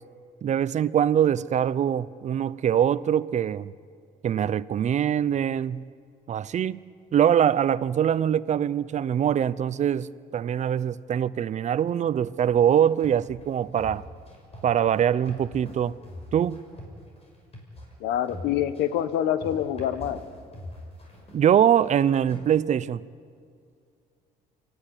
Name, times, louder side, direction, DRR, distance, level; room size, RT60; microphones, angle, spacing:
voice 1, 0.4-3.7 4.2-5.8 6.3-6.8 7.1-14.0 14.6-15.9 16.3-16.6 21.3-23.0, right 9 dB, 45° right, 0.6 m, -23 dB
sound 1, 12.4-22.4, left 1 dB, 35° left, 6.4 m, -43 dB
voice 2, 18.0-20.2, left 10 dB, 85° left, 1.2 m, -26 dB
23.5 x 15.5 x 9.9 m
cardioid pair, 110°, 17 cm